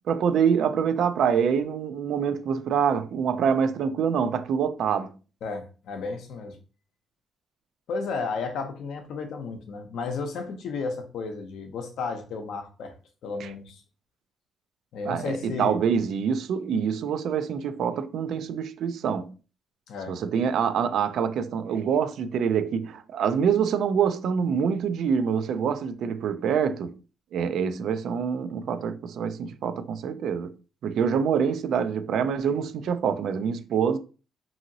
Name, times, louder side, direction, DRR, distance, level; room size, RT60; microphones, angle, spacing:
voice 1, 0.1-5.1 13.4-13.5 15.0-19.3 20.1-27.0 27.3-30.5 30.8-34.0, right 7 dB, 70° right, 0.3 m, -25 dB
voice 2, 5.4-6.6 7.9-12.9 13.2-13.8 14.9-15.8 19.9-20.2, left 4 dB, 75° left, 0.6 m, -33 dB
2.8 x 2.7 x 2.6 m
cardioid pair, 90°, 0 cm